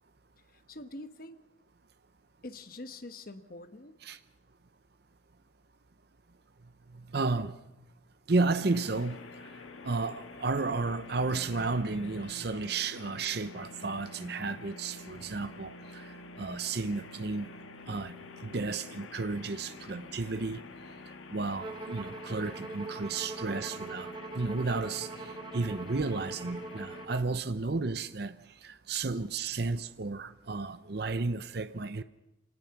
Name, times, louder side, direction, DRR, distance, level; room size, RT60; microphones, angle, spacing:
voice 1, 0.5-1.4 2.4-3.9 23.3-23.4, left 2 dB, 45° left, 1.2 m, -45 dB
voice 2, 7.1-7.6 8.3-9.2 9.8-16.1 16.4-17.5 17.9-18.2 18.4-20.6 21.3-28.4 28.6-32.0, right 3 dB, 55° right, 0.7 m, -32 dB
sound 1, 8.7-27.1, left 3 dB, 90° left, 1.7 m, -48 dB
Bowed string instrument, 21.6-27.3, right 3 dB, 25° right, 1.0 m, -43 dB
25.5 x 18.5 x 5.9 m
head